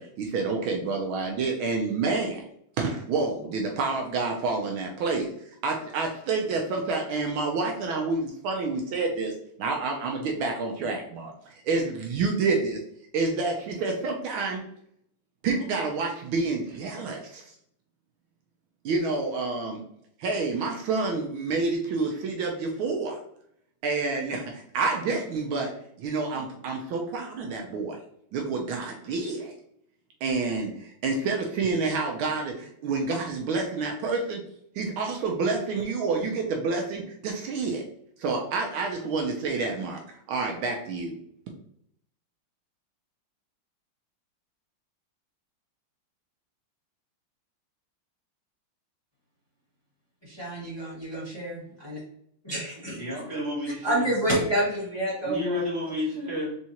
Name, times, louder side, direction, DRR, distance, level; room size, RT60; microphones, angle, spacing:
voice 1, 0.0-2.4 2.8-5.3 5.6-12.8 13.1-14.6 15.4-17.4 18.8-19.8 20.2-23.2 23.8-25.7 26.0-28.0 28.3-29.5 30.2-34.4 34.7-37.8 38.2-40.0 40.3-41.1, right 3 dB, 75° right, 1 dB, 1.4 m, -28 dB
voice 2, 50.2-52.0 52.5-53.0 53.8-55.7, right 1 dB, 15° left, -9 dB, 1.6 m, -28 dB
voice 3, 52.9-54.1 55.2-56.6, left 1 dB, 30° right, -5 dB, 1.8 m, -31 dB
4.4 x 3.5 x 2.8 m, 0.70 s
omnidirectional pair, 2.3 m